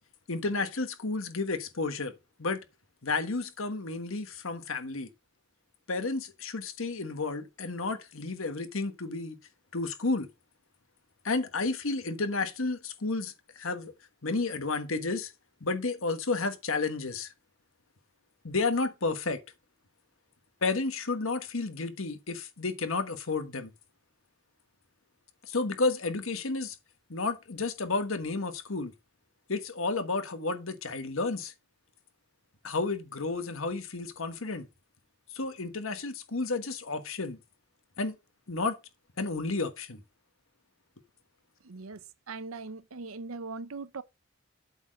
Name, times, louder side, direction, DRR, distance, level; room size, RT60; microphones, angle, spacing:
voice 1, 0.3-2.1 2.4-2.6 3.0-5.1 5.9-9.4 9.7-10.3 11.2-13.9 14.2-15.3 15.6-17.3 18.4-19.4 20.6-23.7 25.5-26.7 27.1-28.9 29.5-31.5 32.6-34.7 35.3-37.4 38.0-38.1 38.5-38.8 39.2-40.0, left 3 dB, 75° left, 1.4 m, -31 dB
voice 2, 41.6-44.0, right 3 dB, 85° right, 0.7 m, -40 dB
8.2 x 4.4 x 6.4 m
head